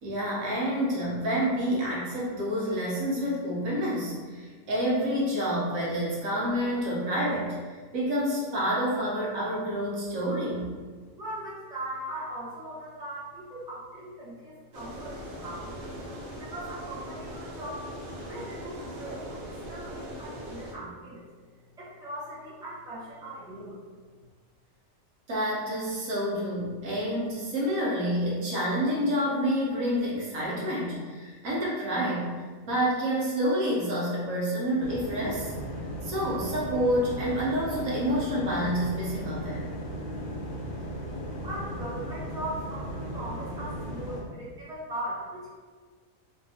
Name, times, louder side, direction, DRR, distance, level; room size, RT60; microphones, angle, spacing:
voice 1, 0.0-10.7 25.3-32.3 32.6-35.5 36.0-39.6, equal, 85° right, -5 dB, 1.3 m, -28 dB
voice 2, 11.2-15.8 16.4-17.9 18.2-21.2 21.8-23.8 41.4-45.5, right 1 dB, 5° right, -8 dB, 0.6 m, -39 dB
sound 1, 14.7-20.7, equal, 55° right, 0.9 m, -40 dB
sound 2, 34.8-44.2, equal, 80° left, 1.1 m, -36 dB
3.4 x 2.9 x 2.8 m, 1.5 s
omnidirectional pair, 1.4 m